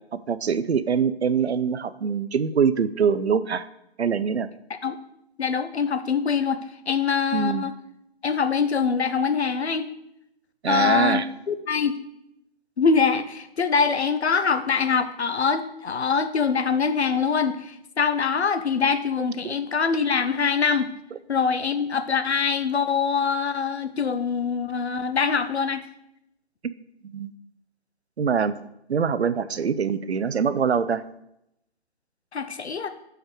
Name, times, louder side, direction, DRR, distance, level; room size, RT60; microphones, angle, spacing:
voice 1, 0.3-3.6 4.0-4.5 7.3-7.7 10.6-11.3 19.4-19.5 27.1-27.3 28.2-28.6 28.9-31.0, right 6 dB, 75° right, 14 dB, 0.6 m, -23 dB
voice 2, 5.4-6.6 6.9-7.7 8.2-9.9 10.7-12.0 12.8-20.9 21.3-25.8 32.3-32.9, left 5 dB, 75° left, 10 dB, 0.7 m, -24 dB
6.3 x 4.7 x 4.8 m, 0.81 s
figure-of-eight pair, 160°, 33 cm